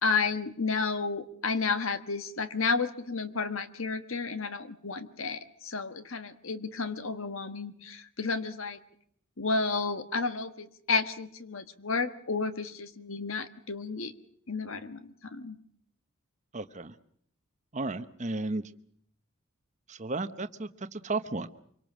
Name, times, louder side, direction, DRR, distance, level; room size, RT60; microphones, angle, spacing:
voice 1, 0.0-8.8 9.4-14.1 14.5-15.6, left 4 dB, 70° left, 10 dB, 1.4 m, -32 dB
voice 2, 16.5-16.9 17.7-18.6 19.9-21.5, right 3 dB, 35° right, 11 dB, 1.0 m, -34 dB
25.0 x 24.0 x 6.2 m, 0.65 s
head